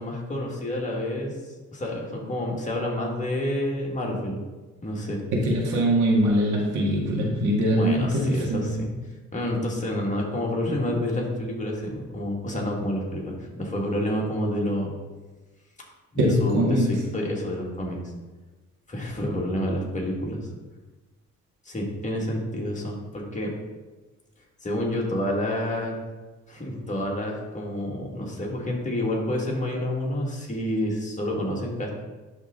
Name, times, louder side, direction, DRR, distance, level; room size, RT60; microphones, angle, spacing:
voice 1, 0.0-1.4 1.7-4.4 4.8-5.2 7.6-8.9 9.3-14.9 16.1-18.0 18.9-20.5 21.7-23.5 24.6-25.9 26.5-31.9, left 1 dB, 25° left, -2 dB, 1.9 m, -29 dB
voice 2, 5.3-8.9 16.2-16.9, equal, 75° right, -2 dB, 1.9 m, -22 dB
11.0 x 3.7 x 3.8 m, 1.2 s
cardioid pair, 90°, 30 cm